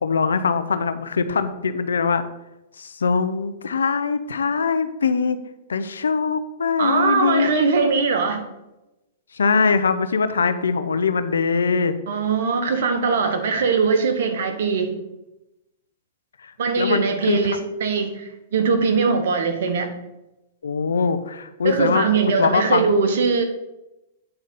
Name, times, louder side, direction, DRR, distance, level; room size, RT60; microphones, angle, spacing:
voice 1, 0.0-2.2 2.8-5.4 5.7-7.5 9.3-11.9 16.4-16.5 16.8-17.4 20.6-22.1 22.4-22.9, left 5 dB, 90° left, 12 dB, 0.7 m, -22 dB
voice 2, 6.8-8.4 12.1-15.0 16.6-20.0 21.6-23.4, right 5 dB, 70° right, 6 dB, 1.3 m, -21 dB
9.0 x 4.0 x 5.4 m, 0.95 s
hypercardioid pair, 120°, 0 cm